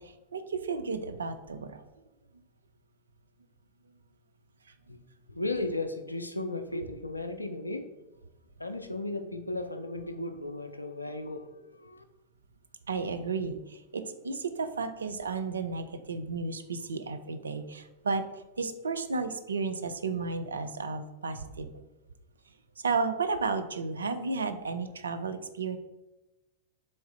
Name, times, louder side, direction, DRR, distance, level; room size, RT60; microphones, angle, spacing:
voice 1, 0.0-1.9 4.7-5.0 12.9-18.3 18.6-21.8 22.8-25.8, right 4 dB, 70° right, 9 dB, 0.3 m, -33 dB
voice 2, 5.3-7.9 8.6-12.0, left 2 dB, 85° left, 7 dB, 0.4 m, -35 dB
3.5 x 3.2 x 4.1 m, 1.0 s
figure-of-eight pair, 90°, 0 cm